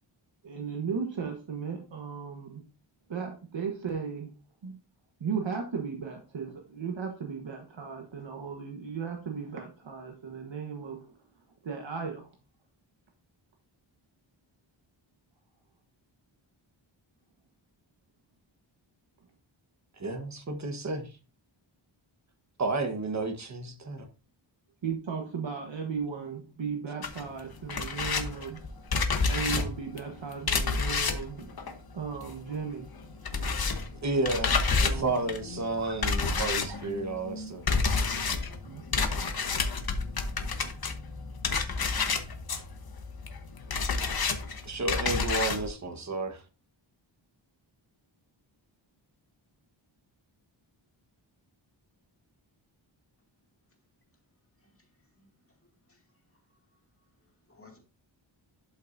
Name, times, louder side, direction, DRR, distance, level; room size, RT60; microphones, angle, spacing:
voice 1, 0.4-2.6 3.1-4.3 4.6-4.7 5.2-11.1 11.6-12.3 24.8-28.6 29.3-32.9 33.4-33.9 34.7-35.2 36.7-36.8 38.6-39.1, right 6 dB, 70° right, 1.4 m, -36 dB
voice 2, 20.0-21.1 22.6-24.0 34.0-37.6 44.6-46.4, right 3 dB, 35° right, 1.3 m, -32 dB
sound 1, 27.0-32.6 32.8-45.7, left 4 dB, 50° left, 1.1 m, -30 dB
voice 3, 54.6-55.3 55.9-56.6 57.2-57.8, left 3 dB, 30° left, 2.3 m, -60 dB
11.5 x 5.8 x 2.6 m
wide cardioid pair, 140°, 47 cm